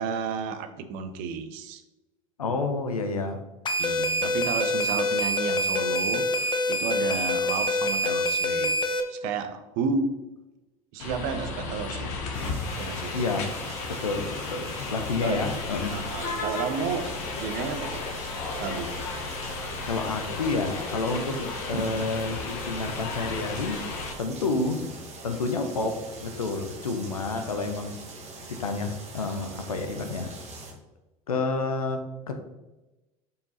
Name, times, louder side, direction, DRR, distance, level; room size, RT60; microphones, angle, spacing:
voice 1, 0.0-1.8 3.8-8.8 9.1-10.2 10.9-12.1 12.8-13.1 15.2-15.4 15.9-17.1 17.3-18.1 18.6-19.0 21.7-21.8, right 5 dB, 55° right, 9 dB, 0.8 m, -32 dB
voice 2, 2.4-3.4 13.1-13.5 13.9-15.9 19.9-23.8 24.2-24.9 25.2-28.0 28.5-30.3 31.3-32.4, left 3 dB, 85° left, 6 dB, 0.8 m, -29 dB
sound 1, 3.7-9.0, left 1 dB, 25° left, 0.8 m, -26 dB
sound 2, 11.0-24.1, left 3 dB, 60° left, 1.3 m, -34 dB
sound 3, 12.3-30.7, right 2 dB, 40° right, 1.6 m, -43 dB
5.2 x 4.6 x 4.0 m, 1.0 s
figure-of-eight pair, 70°, 18 cm